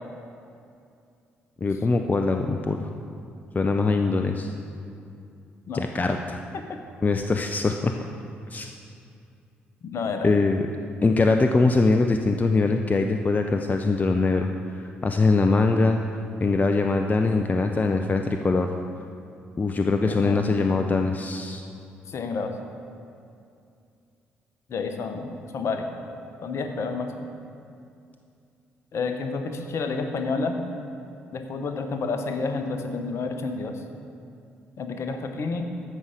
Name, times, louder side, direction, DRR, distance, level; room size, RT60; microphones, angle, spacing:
voice 1, 1.6-2.9 3.5-4.5 5.7-6.4 7.0-7.9 8.5-8.7 10.2-10.7 11.0-16.0 16.4-18.7 19.6-21.6, left 3 dB, 30° left, 5 dB, 0.6 m, -22 dB
voice 2, 9.9-10.3 20.0-20.6 22.1-22.5 24.7-25.9 26.4-27.3 28.9-30.6 31.3-33.8 34.8-35.7, left 4 dB, 55° left, 5 dB, 1.0 m, -30 dB
14.0 x 5.6 x 5.1 m, 2.5 s
figure-of-eight pair, 45°, 6 cm